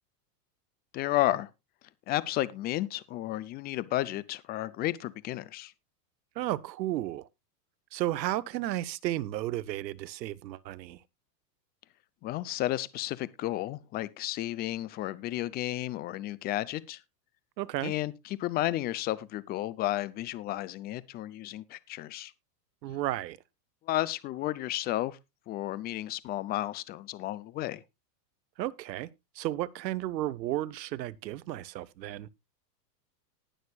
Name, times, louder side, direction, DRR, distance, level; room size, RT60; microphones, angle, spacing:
voice 1, 0.9-1.5 2.1-5.7 12.2-17.0 17.8-22.3 23.9-25.2 25.5-27.8, left 15 dB, 20° left, 0.4 m, -32 dB
voice 2, 6.4-7.3 7.9-11.0 17.6-17.9 22.8-23.4 28.6-29.1 29.3-32.3, right 14 dB, 85° right, 1.0 m, -33 dB
19.0 x 6.5 x 2.3 m
supercardioid pair, 135°, 49 cm